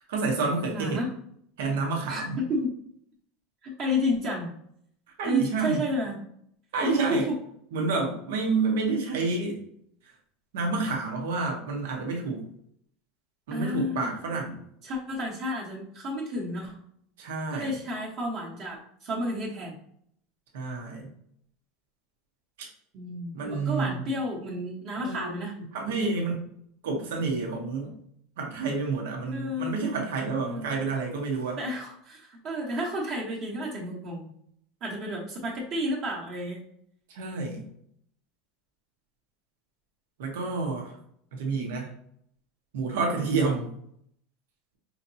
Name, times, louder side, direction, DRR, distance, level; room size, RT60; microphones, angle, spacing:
voice 1, 0.1-1.0 1.6-2.4 5.2-5.8 6.7-7.3 7.7-9.6 10.5-12.5 13.5-14.6 17.2-17.7 20.5-21.1 22.6-22.7 23.3-24.0 25.0-25.3 25.7-26.4 26.8-28.0 28.4-31.6 37.1-37.7 40.2-40.9 41.3-41.9 42.7-43.7, right 4 dB, 90° right, 0 dB, 1.1 m, -29 dB
voice 2, 0.7-1.1 2.1-2.7 3.6-4.5 5.2-6.2 6.8-7.2 13.5-14.2 14.8-16.7 17.5-19.8 22.9-25.5 25.8-26.2 29.3-29.8 30.4-30.8 31.6-34.3 34.8-36.6, left 1 dB, 40° right, -4 dB, 1.0 m, -31 dB
5.0 x 2.9 x 2.7 m, 0.68 s
supercardioid pair, 160°, 0 cm